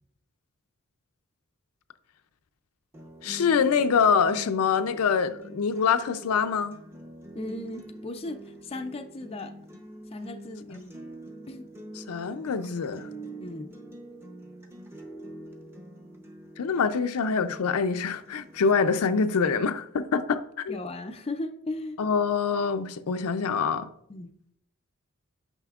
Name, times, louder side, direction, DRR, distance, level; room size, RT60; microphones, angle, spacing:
sound 1, 2.9-18.9, right 1 dB, 10° right, 0.7 m, -45 dB
voice 1, 3.2-6.8 10.7-10.8 12.0-13.1 16.6-20.8 22.0-23.9, left 6 dB, 90° left, 0.5 m, -25 dB
voice 2, 7.3-9.5 10.1-10.9 11.5-11.7 13.4-13.7 20.7-22.0 24.1-24.3, left 2 dB, 25° left, 0.4 m, -36 dB
9.1 x 5.7 x 2.4 m
head